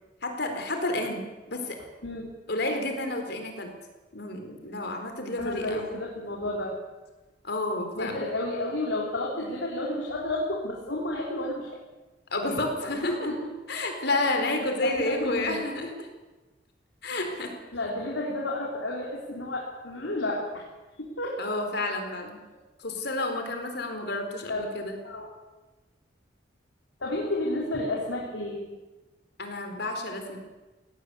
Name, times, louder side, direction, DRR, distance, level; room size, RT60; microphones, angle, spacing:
voice 1, 0.2-1.2 1.5-1.8 2.5-3.7 4.1-6.0 7.4-8.2 12.3-13.3 13.7-16.1 17.0-17.5 21.4-22.4 22.8-25.0 29.4-30.4, left 2 dB, 60° left, 5 dB, 4.2 m, -30 dB
voice 2, 5.4-6.7 8.0-11.7 12.4-12.5 12.8-13.5 14.8-15.6 17.7-20.6 21.0-21.4 24.5-24.7 25.0-25.3 27.0-28.7, left 1 dB, 80° left, -2 dB, 3.6 m, -31 dB
18.0 x 17.5 x 8.4 m, 1.2 s
head